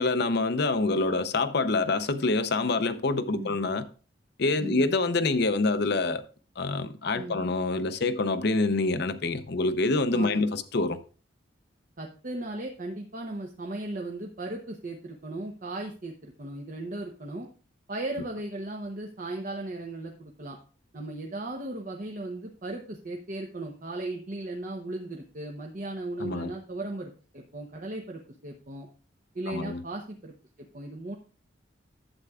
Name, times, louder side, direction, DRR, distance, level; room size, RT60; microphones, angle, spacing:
voice 1, 0.0-3.8 4.4-6.2 6.6-11.0 26.2-26.5 29.5-29.8, left 3 dB, 60° left, 0.7 m, -26 dB
voice 2, 12.0-17.5 17.9-20.6 20.9-28.9 29.3-30.3 30.7-31.2, right 2 dB, 45° right, 0.9 m, -36 dB
11.5 x 8.0 x 2.4 m
head